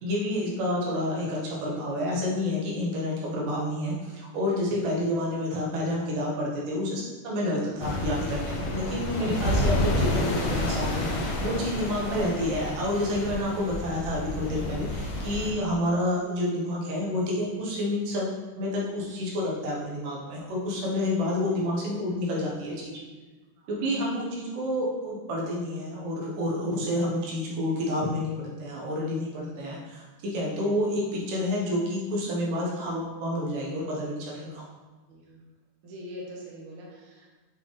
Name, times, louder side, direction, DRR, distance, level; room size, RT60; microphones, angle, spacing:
voice 1, 0.0-22.9 23.7-34.7, left 1 dB, 80° right, -4 dB, 2.8 m, -29 dB
sound 1, 7.8-15.5, left 1 dB, 70° left, 1.2 m, -29 dB
voice 2, 35.1-35.4 35.8-37.3, equal, 55° right, -3 dB, 1.6 m, -43 dB
7.7 x 4.0 x 3.3 m, 1.3 s
omnidirectional pair, 3.7 m